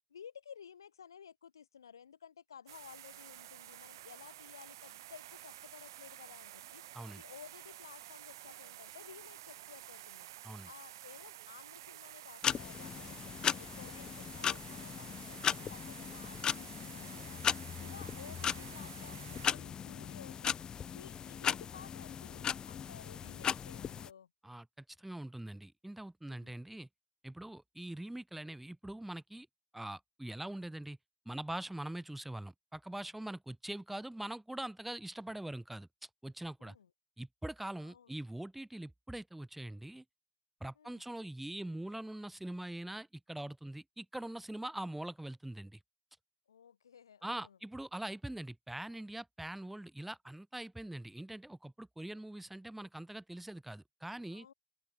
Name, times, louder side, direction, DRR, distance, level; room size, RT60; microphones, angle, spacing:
voice 1, 0.1-6.8 7.2-10.3 10.6-17.4 17.8-20.6 20.9-24.3 26.3-26.6 36.6-36.9 37.8-38.2 40.8-41.0 46.5-47.6 54.3-54.5, left 7 dB, 90° left, 1.7 m, -55 dB
sound 1, 2.7-19.5, right 14 dB, 80° right, 0.9 m, -51 dB
sound 2, 12.4-24.1, left 8 dB, 35° left, 0.4 m, -37 dB
voice 2, 24.4-26.9 27.2-29.5 29.7-31.0 31.3-36.8 37.2-40.0 40.6-45.8 47.2-54.5, right 1 dB, 5° right, 2.4 m, -43 dB
open air
hypercardioid pair, 70°, 2 cm